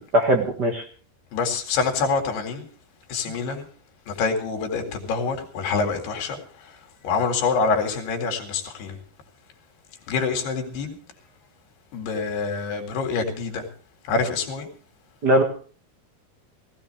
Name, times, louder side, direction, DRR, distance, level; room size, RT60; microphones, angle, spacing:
voice 1, 0.1-0.8 15.2-15.4, right 1 dB, 45° right, 1.3 m, -19 dB
voice 2, 1.3-2.7 3.1-3.7 4.1-6.4 7.0-9.0 10.1-11.0 11.9-13.6 14.1-14.7, left 4 dB, 85° left, 4.2 m, -26 dB
18.0 x 16.0 x 3.3 m
omnidirectional pair, 4.6 m